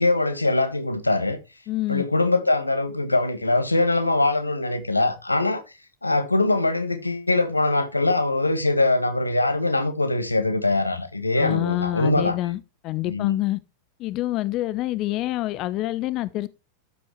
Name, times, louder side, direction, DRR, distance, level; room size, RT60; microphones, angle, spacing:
voice 1, 0.0-1.4 1.9-5.6 6.0-12.4 13.0-13.4, left 2 dB, 85° left, 1.3 m, -22 dB
voice 2, 1.7-2.0 11.4-13.6 14.0-16.5, left 16 dB, 35° left, 0.6 m, -26 dB
12.0 x 7.8 x 3.1 m
figure-of-eight pair, 90°, 0 cm